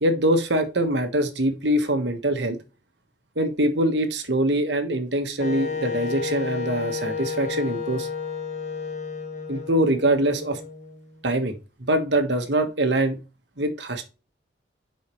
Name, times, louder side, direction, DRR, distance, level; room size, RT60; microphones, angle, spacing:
voice 1, 0.0-2.6 3.3-8.1 9.5-10.6 11.2-13.2 13.6-14.1, right 1 dB, 70° right, 1.5 m, -23 dB
Wind instrument woodwind instrument, 5.4-11.2, left 5 dB, 40° left, 1.3 m, -32 dB
8.1 x 5.7 x 3.1 m
head